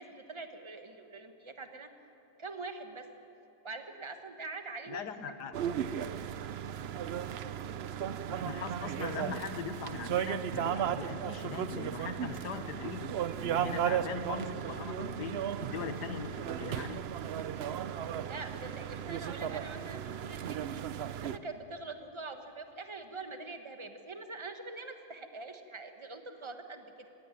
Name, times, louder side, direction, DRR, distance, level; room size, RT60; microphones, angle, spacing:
voice 1, 0.0-1.9 2.4-3.0 3.6-5.0 18.3-20.8 21.2-27.1, right 3 dB, 20° right, 7 dB, 1.2 m, -44 dB
voice 2, 4.9-5.5 8.3-13.1 13.4-17.0, left 7 dB, 75° left, 9 dB, 1.7 m, -40 dB
sound 1, 5.5-21.4, right 9 dB, 70° right, 0.6 m, -35 dB
19.5 x 16.5 x 10.0 m, 2.8 s
omnidirectional pair, 1.8 m